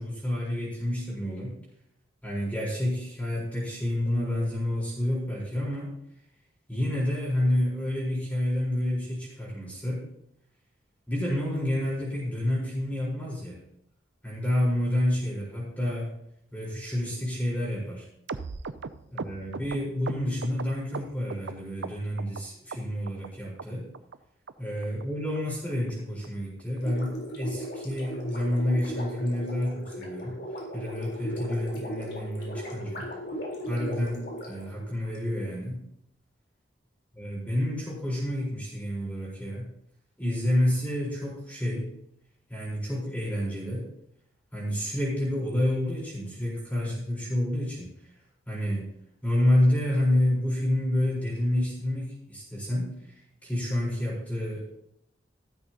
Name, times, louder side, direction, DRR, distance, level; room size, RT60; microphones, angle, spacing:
voice 1, 0.0-1.6 2.2-5.9 6.7-10.1 11.1-13.6 14.2-16.2 16.5-18.0 19.1-23.9 24.6-30.4 30.7-33.1 33.7-35.8 37.2-39.7 40.2-41.9 42.5-43.9 44.5-47.9 48.5-48.9 49.2-52.9 53.4-54.8, left 1 dB, 10° left, -6 dB, 4.3 m, -29 dB
sound 1, 18.3-21.5 21.8-22.4 22.7-23.3 23.6-23.7 23.9-24.2 24.5-24.6 24.8-25.0 25.3-25.4 25.7-25.9 26.2-26.3 26.6-26.8 27.1-27.2 27.5-27.7 28.0-28.1, right 4 dB, 75° right, 0.5 m, -38 dB
Gurgling, 26.8-35.2, equal, 65° left, 4.0 m, -37 dB
13.5 x 12.5 x 2.9 m, 0.76 s
head